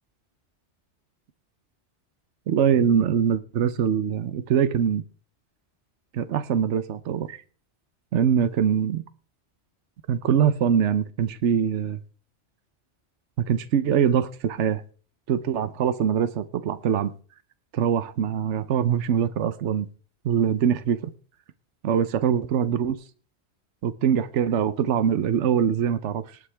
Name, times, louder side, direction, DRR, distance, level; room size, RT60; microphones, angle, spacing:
voice 1, 2.5-5.0 6.1-7.4 8.1-9.0 10.1-12.0 13.4-14.8 15.3-17.1 17.7-19.9 20.2-21.1 21.8-23.0 23.8-26.4, right 8 dB, 80° right, 1.1 m, -23 dB
18.5 x 9.7 x 3.4 m
omnidirectional pair, 1.2 m